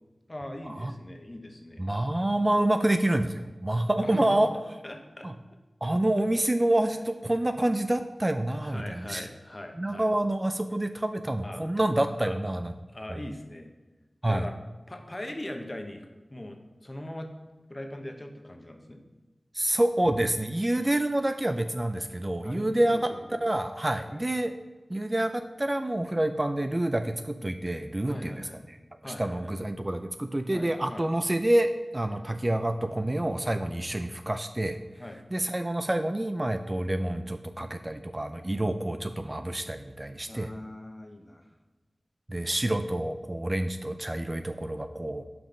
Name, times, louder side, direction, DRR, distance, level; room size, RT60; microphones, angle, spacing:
voice 1, 0.3-1.9 4.0-5.3 6.8-6.9 8.6-10.1 11.4-11.6 12.2-12.4 12.9-13.7 14.3-14.5 14.9-16.6 16.8-17.3 17.7-19.0 22.4-23.4 24.1-24.2 28.1-28.6 29.0-29.5 30.5-31.1 32.1-32.2 35.0-35.2 40.3-41.4, left 1 dB, 30° left, 4 dB, 1.0 m, -40 dB
voice 2, 1.8-4.5 5.2-5.3 5.8-9.3 9.8-12.7 14.2-14.5 19.5-23.0 23.4-24.5 24.9-28.8 29.0-34.8 35.3-40.5 42.3-45.3, right 1 dB, 25° right, 7 dB, 0.4 m, -27 dB
6.0 x 5.1 x 5.1 m, 1.2 s
wide cardioid pair, 60°, 0 cm